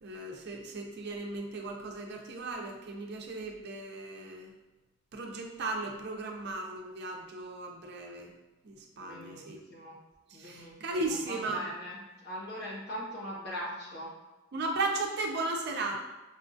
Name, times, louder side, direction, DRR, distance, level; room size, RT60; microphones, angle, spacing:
voice 1, 0.0-4.5 5.1-8.3 8.6-9.6 10.3-11.7 14.5-16.0, right 2 dB, 55° right, 2 dB, 0.5 m, -36 dB
voice 2, 9.0-10.0 10.3-12.0 12.2-14.1, equal, 55° left, -4 dB, 1.1 m, -41 dB
5.5 x 2.3 x 2.5 m, 1.0 s
head